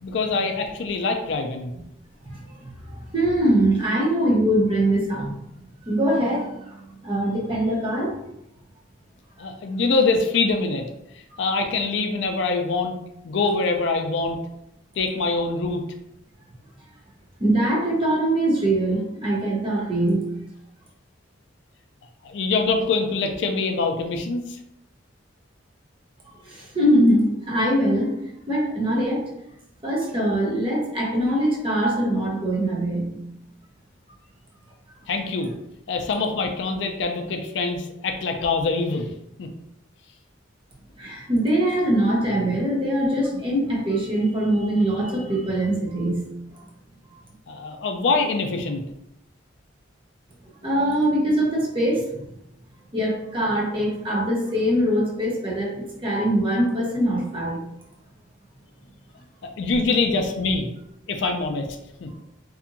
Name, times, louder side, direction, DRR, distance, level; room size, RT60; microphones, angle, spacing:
voice 1, 0.0-1.7 9.4-10.8 11.4-12.9 13.2-14.4 15.0-15.8 22.2-24.5 35.1-35.5 35.9-39.1 39.4-39.5 47.5-48.8 59.6-60.7 61.1-61.6 62.0-62.1, left 3 dB, 60° left, 5 dB, 0.3 m, -24 dB
voice 2, 2.2-5.4 5.8-6.8 7.0-8.2 17.4-20.3 26.4-28.1 28.5-29.3 29.8-33.2 41.0-46.3 46.5-46.6 47.1-47.2 50.6-52.3 52.9-57.6 62.1-62.2, right 1 dB, 25° right, -3 dB, 0.7 m, -22 dB
2.7 x 2.5 x 2.5 m, 0.82 s
head